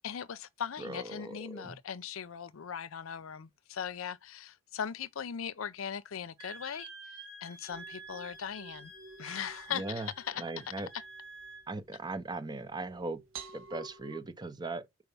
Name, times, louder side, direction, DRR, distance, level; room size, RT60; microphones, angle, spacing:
voice 1, 0.0-8.9 9.2-10.4, left 8 dB, 75° left, 0.5 m, -39 dB
voice 2, 0.8-1.8 9.7-10.1 10.4-10.9 11.7-13.2 13.5-14.9, right 2 dB, 20° right, 0.6 m, -39 dB
Wind instrument woodwind instrument, 6.4-11.7, right 2 dB, 60° right, 2.3 m, -49 dB
sound 1, 7.7-14.2, right 5 dB, 80° right, 1.2 m, -52 dB
4.6 x 4.6 x 5.3 m
head